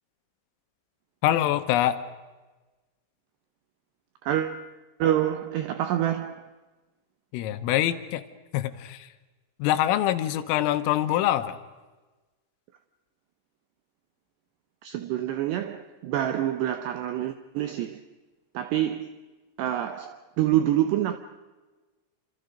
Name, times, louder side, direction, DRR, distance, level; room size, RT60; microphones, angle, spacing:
voice 1, 1.2-2.0 7.3-8.2 8.5-9.1 9.6-11.6, left 12 dB, 80° left, 3.6 m, -24 dB
voice 2, 4.2-4.6 5.0-6.4 14.8-18.0 18.5-19.1 19.6-21.2, right 12 dB, 80° right, 2.4 m, -27 dB
28.0 x 26.0 x 5.2 m
omnidirectional pair, 6.0 m